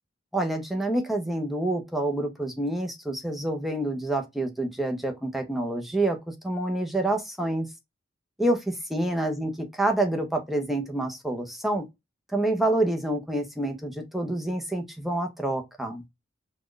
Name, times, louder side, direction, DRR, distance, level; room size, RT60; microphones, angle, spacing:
voice 1, 0.3-7.7 8.4-8.6 8.9-11.8 12.3-16.0, right 1 dB, ahead, 0.7 m, -27 dB
4.2 x 2.4 x 3.1 m
head